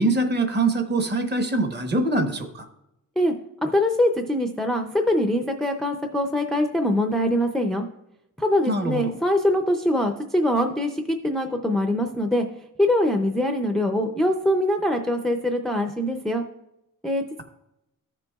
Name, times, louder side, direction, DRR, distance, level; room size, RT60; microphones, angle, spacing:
voice 1, 0.0-2.7 8.7-9.1, right 2 dB, 30° right, 6 dB, 1.0 m, -23 dB
voice 2, 3.6-7.9 8.4-12.5 12.8-16.4 17.0-17.4, left 1 dB, ahead, 4 dB, 0.4 m, -23 dB
14.5 x 6.8 x 2.3 m, 0.85 s
wide cardioid pair, 150°, 33 cm